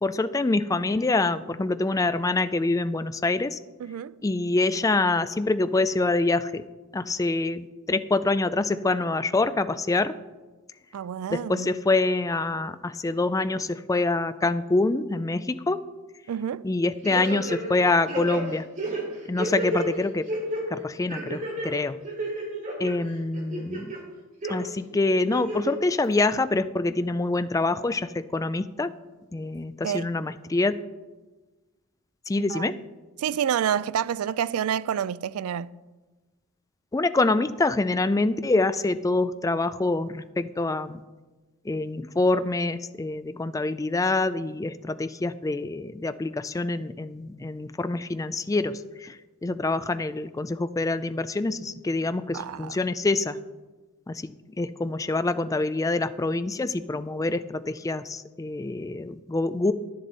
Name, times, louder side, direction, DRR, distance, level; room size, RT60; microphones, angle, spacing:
voice 1, 0.0-3.6 4.2-6.6 6.9-10.1 11.3-15.8 16.6-18.7 19.3-20.3 20.7-22.0 22.8-23.9 24.5-28.9 29.3-30.8 32.3-32.7 36.9-41.0 41.7-53.4 54.1-54.3 54.6-59.7, left 2 dB, 15° left, 0.3 m, -26 dB
voice 2, 3.8-4.2 10.9-11.7 16.3-16.7 29.8-30.1 32.4-32.7 33.2-35.7 52.3-52.8, right 9 dB, 75° right, 0.3 m, -28 dB
sound 1, 17.0-17.8 18.1-19.9 20.3-20.6 21.1-21.7 22.0-22.9 23.3-24.0 24.4-24.5 25.2-25.7 26.1-26.2, right 2 dB, 35° right, 2.5 m, -31 dB
10.5 x 10.5 x 4.0 m
head